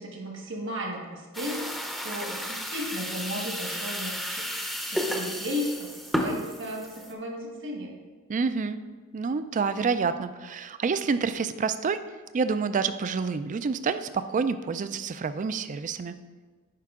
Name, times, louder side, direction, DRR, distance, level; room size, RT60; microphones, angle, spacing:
voice 1, 0.0-1.7 2.0-4.4 4.9-7.9, equal, 60° right, 1 dB, 1.4 m, -35 dB
sound 1, 1.3-7.1, equal, ahead, 0.6 m, -32 dB
voice 2, 8.3-8.8 9.1-12.0 12.3-16.2, right 5 dB, 35° right, 12 dB, 0.3 m, -28 dB
10.5 x 4.8 x 3.6 m, 1.4 s
head